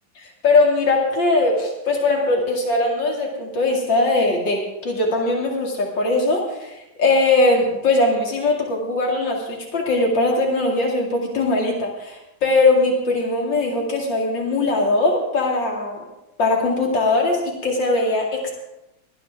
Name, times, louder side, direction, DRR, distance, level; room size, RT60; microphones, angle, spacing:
voice 1, 0.4-6.7 7.0-9.4 9.7-16.0 16.4-18.5, left 2 dB, 75° left, 0 dB, 3.0 m, -20 dB
18.5 x 12.5 x 3.6 m, 0.91 s
omnidirectional pair, 2.0 m